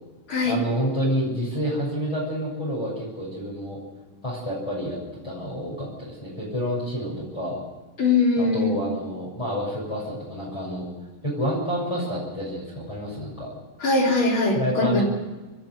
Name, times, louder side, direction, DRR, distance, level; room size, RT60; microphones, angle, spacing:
voice 1, 0.4-3.8 4.2-5.0 5.2-7.6 8.4-10.9 11.2-13.5 14.5-15.0, equal, 10° left, -7 dB, 6.5 m, -29 dB
voice 2, 8.0-8.7 13.8-15.0, left 3 dB, 35° left, -1 dB, 4.5 m, -21 dB
27.5 x 10.5 x 9.5 m, 1.3 s
omnidirectional pair, 3.9 m